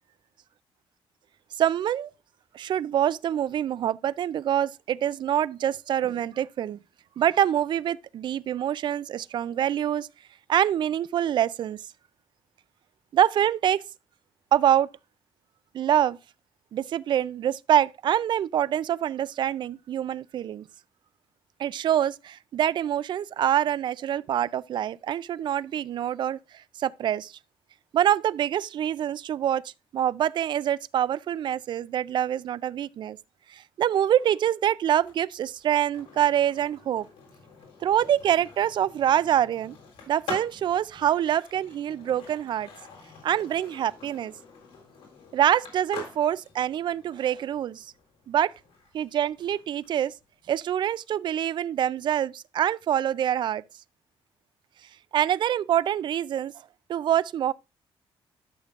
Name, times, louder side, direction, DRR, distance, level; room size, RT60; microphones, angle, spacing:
voice 1, 1.6-2.1 2.5-6.8 7.2-10.1 10.5-11.8 13.1-13.8 14.5-14.9 15.7-16.2 16.7-20.6 21.6-27.3 27.9-33.2 33.5-37.1 37.8-39.8 40.1-42.7 43.2-44.3 45.3-47.9 48.3-48.5 48.9-50.1 50.5-53.6 55.1-56.5 56.9-57.5, right 10 dB, 55° right, 0.3 m, -25 dB
Skateboard, 34.9-50.8, left 5 dB, 85° left, 3.7 m, -46 dB
12.0 x 6.6 x 2.4 m
cardioid pair, 115°, 10 cm